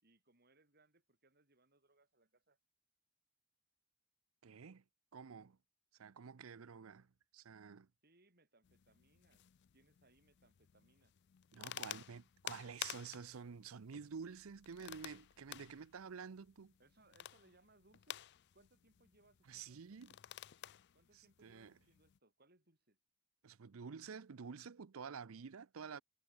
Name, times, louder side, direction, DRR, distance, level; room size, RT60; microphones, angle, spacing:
voice 1, 0.0-2.6 8.0-9.4 9.7-11.1 16.8-18.2 18.5-20.0 20.9-23.0, right 2 dB, 50° right, 5.6 m, -71 dB
voice 2, 4.4-4.8 5.1-5.6 6.0-7.1 7.3-7.9 11.5-16.7 19.5-20.2 21.1-21.7 23.4-26.0, right 6 dB, 85° right, 0.6 m, -50 dB
sound 1, 8.6-22.2, left 12 dB, 55° left, 0.4 m, -53 dB
head